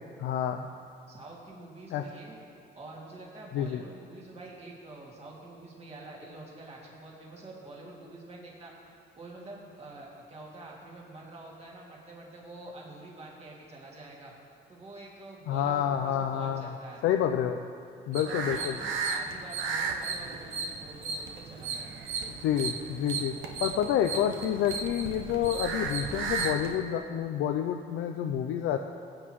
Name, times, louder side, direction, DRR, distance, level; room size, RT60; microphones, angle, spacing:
voice 1, 0.2-0.7 1.9-2.0 3.5-3.8 15.5-16.6 17.0-17.6 18.1-18.8 22.3-23.3 23.6-28.8, left 9 dB, 85° left, 5 dB, 0.4 m, -28 dB
voice 2, 1.1-2.4 2.7-8.7 9.2-14.3 14.7-17.0 18.1-22.1, right 2 dB, 30° right, -4 dB, 2.3 m, -47 dB
sound 1, 18.1-26.8, right 5 dB, 75° right, 0.8 m, -34 dB
16.5 x 8.2 x 3.1 m, 2.6 s
cardioid pair, 90°, 20 cm